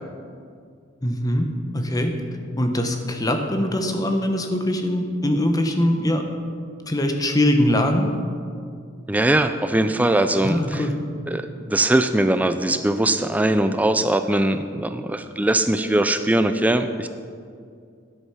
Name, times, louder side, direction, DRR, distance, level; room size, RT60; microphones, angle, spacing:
voice 1, 1.0-1.5 1.7-2.1 2.6-6.2 6.9-8.1 10.4-11.0, left 1 dB, 20° left, 5 dB, 0.9 m, -22 dB
voice 2, 9.1-10.9 11.3-17.1, right 1 dB, 10° right, 9 dB, 0.3 m, -21 dB
10.0 x 8.1 x 5.7 m, 2.2 s
head